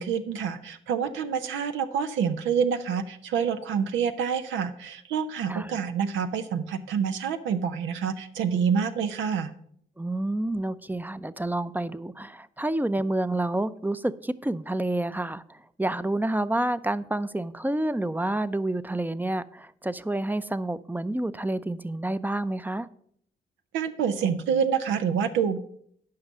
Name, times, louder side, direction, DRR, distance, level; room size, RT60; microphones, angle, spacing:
voice 1, 0.0-9.5 23.7-25.6, right 7 dB, 85° right, 9 dB, 0.7 m, -27 dB
voice 2, 5.5-5.8 10.0-22.9, right 1 dB, 10° right, 15 dB, 0.5 m, -29 dB
9.6 x 5.5 x 6.2 m, 0.65 s
supercardioid pair, 45°, 19 cm